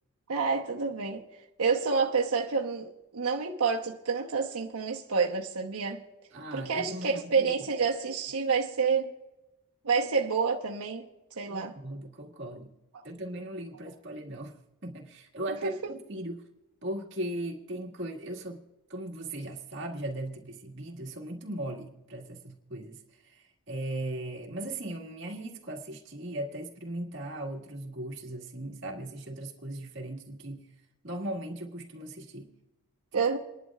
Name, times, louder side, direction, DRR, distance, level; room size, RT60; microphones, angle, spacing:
voice 1, 0.3-1.2 1.6-6.0 6.5-9.1 9.8-11.0 11.4-11.7 12.9-13.0 15.6-15.9 33.1-33.4, right 5 dB, 90° right, 1.0 m, -28 dB
voice 2, 6.3-7.5 11.5-12.7 13.0-14.5 14.8-16.4 16.8-18.6 18.9-23.0 23.3-23.4 23.7-30.6 31.0-32.5 33.1-33.2, right 1 dB, 55° right, 1.9 m, -38 dB
28.5 x 11.0 x 2.4 m
head